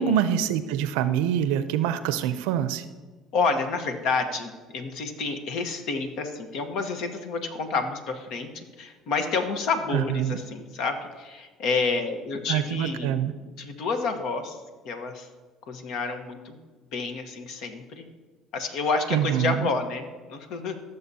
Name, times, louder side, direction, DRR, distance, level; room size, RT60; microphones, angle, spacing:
voice 1, 0.0-2.8 9.9-10.4 12.5-13.3 19.1-19.7, right 10 dB, 85° right, 12 dB, 0.5 m, -25 dB
voice 2, 3.3-13.2 13.6-14.6 14.8-15.3 15.7-16.6 16.9-18.1 18.5-20.8, left 4 dB, 70° left, 7 dB, 1.2 m, -29 dB
15.5 x 6.7 x 2.8 m, 1.3 s
supercardioid pair, 85°, 0 cm